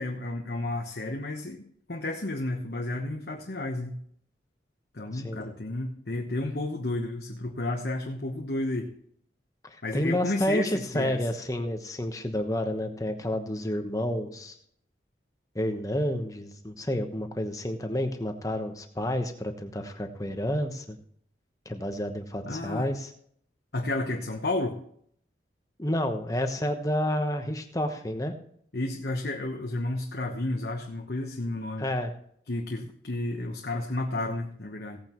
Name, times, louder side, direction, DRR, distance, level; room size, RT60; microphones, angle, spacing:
voice 1, 0.0-4.0 4.9-8.9 9.8-11.3 22.4-22.9 23.7-24.8 28.7-31.9 32.5-35.0, left 2 dB, 65° left, 2 dB, 1.1 m, -32 dB
voice 2, 9.6-14.5 15.5-21.0 21.6-23.1 25.8-28.3 31.8-32.1, equal, 20° left, 6 dB, 1.1 m, -30 dB
17.0 x 8.9 x 3.1 m, 0.65 s
head